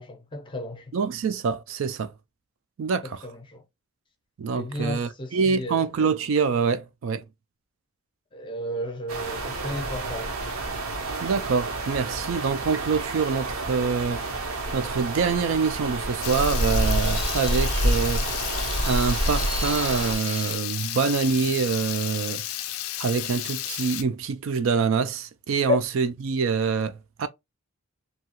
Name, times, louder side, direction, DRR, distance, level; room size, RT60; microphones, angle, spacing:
voice 1, 0.0-0.9 3.0-3.6 4.5-5.9 8.3-10.4 25.7-25.8, left 2 dB, 25° left, 0.5 m, -32 dB
voice 2, 0.9-2.1 2.8-3.2 4.4-7.2 11.2-14.3 14.7-18.3 18.8-22.4 23.0-27.3, right 5 dB, 65° right, 0.3 m, -25 dB
sound 1, 9.1-20.1, right 1 dB, 80° right, 0.7 m, -28 dB
sound 2, 15.4-20.6, right 2 dB, 30° right, 0.6 m, -39 dB
Water tap faucet / Liquid, 16.2-24.0, left 13 dB, 85° left, 0.4 m, -32 dB
2.8 x 2.3 x 2.8 m
head